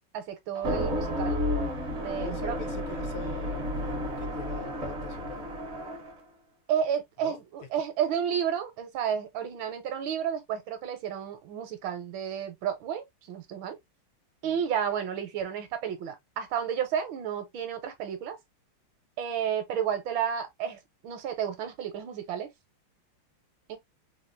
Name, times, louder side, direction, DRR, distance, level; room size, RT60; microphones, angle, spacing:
voice 1, 0.1-1.4 2.0-2.6 6.7-13.8 14.4-18.4 19.2-22.5 23.7-23.8, right 8 dB, 75° right, 1.4 m, -31 dB
sound 1, 0.5-6.2, left 1 dB, 55° right, 0.7 m, -32 dB
voice 2, 2.2-5.5 7.2-7.4 14.4-14.6, left 5 dB, 75° left, 1.5 m, -44 dB
3.5 x 2.4 x 2.4 m
omnidirectional pair, 2.3 m